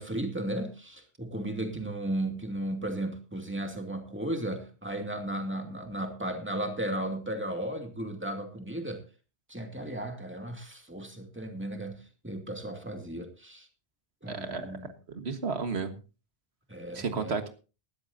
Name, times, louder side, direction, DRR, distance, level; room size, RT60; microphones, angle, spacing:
voice 1, 0.0-9.0 9.5-13.7 14.2-14.9 16.7-17.4, right 1 dB, 10° right, 4 dB, 2.4 m, -35 dB
voice 2, 14.3-14.7 15.1-16.0 16.9-17.5, right 4 dB, 85° right, 8 dB, 1.8 m, -32 dB
19.0 x 13.0 x 2.7 m, 0.33 s
omnidirectional pair, 1.1 m